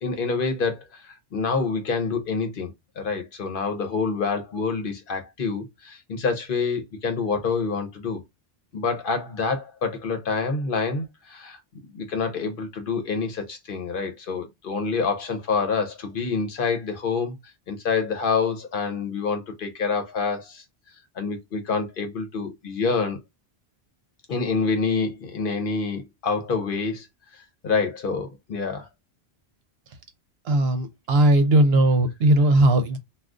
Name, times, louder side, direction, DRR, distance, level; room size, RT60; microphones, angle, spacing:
voice 1, 0.0-8.2 8.7-11.6 11.9-17.3 17.7-20.6 21.2-23.2 24.3-27.1 27.6-28.9, left 4 dB, 60° left, 0.9 m, -27 dB
voice 2, 30.5-33.0, right 1 dB, 80° right, 0.9 m, -18 dB
2.4 x 2.4 x 3.5 m
omnidirectional pair, 1.0 m